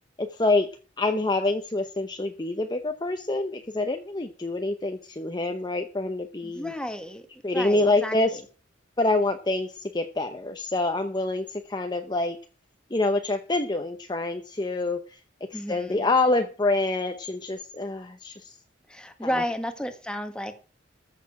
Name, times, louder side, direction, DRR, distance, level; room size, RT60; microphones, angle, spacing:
voice 1, 0.2-0.7 1.0-6.7 7.4-8.4 9.0-12.4 12.9-15.2 15.5-18.6 19.3-19.4, left 2 dB, 20° left, 0.8 m, -26 dB
voice 2, 6.4-7.3 7.5-8.4 15.5-16.1 18.9-20.5, equal, 5° left, 1.4 m, -32 dB
14.5 x 6.8 x 5.9 m
head